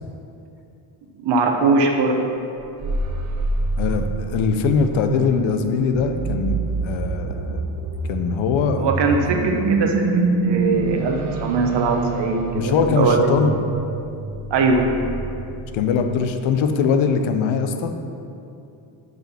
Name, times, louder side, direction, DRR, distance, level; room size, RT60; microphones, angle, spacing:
voice 1, 1.2-2.2 8.8-13.3 14.5-14.9, right 4 dB, 60° right, 2 dB, 1.1 m, -21 dB
sound 1, 2.6-16.1, right 3 dB, 35° right, 0.6 m, -27 dB
voice 2, 3.8-6.6 6.8-7.6 8.1-8.9 9.4-9.5 12.5-13.6 15.7-17.9, left 5 dB, 70° left, 7 dB, 0.8 m, -21 dB
6.2 x 5.1 x 5.7 m, 2.7 s
cardioid pair, 90°, 49 cm